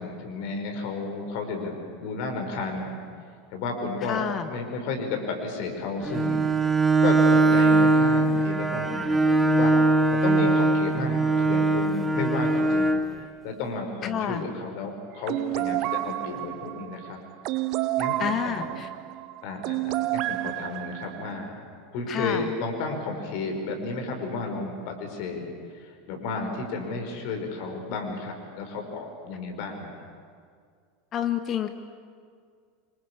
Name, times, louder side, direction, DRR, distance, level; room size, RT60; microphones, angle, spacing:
voice 1, 0.0-3.0 3.5-6.4 7.0-9.8 10.1-12.9 13.2-17.2 18.0-18.7 19.4-21.7 21.9-29.9, left 3 dB, 50° left, 4 dB, 5.3 m, -32 dB
voice 2, 4.0-4.5 14.0-14.4 18.2-18.9 22.1-22.5 31.1-31.7, left 8 dB, 35° left, 8 dB, 1.5 m, -29 dB
Bowed string instrument, 6.0-13.1, right 2 dB, 5° right, 2.3 m, -21 dB
sound 1, 15.2-21.5, right 16 dB, 45° right, 0.6 m, -30 dB
26.5 x 25.0 x 8.6 m, 2.1 s
figure-of-eight pair, 80°, 0 cm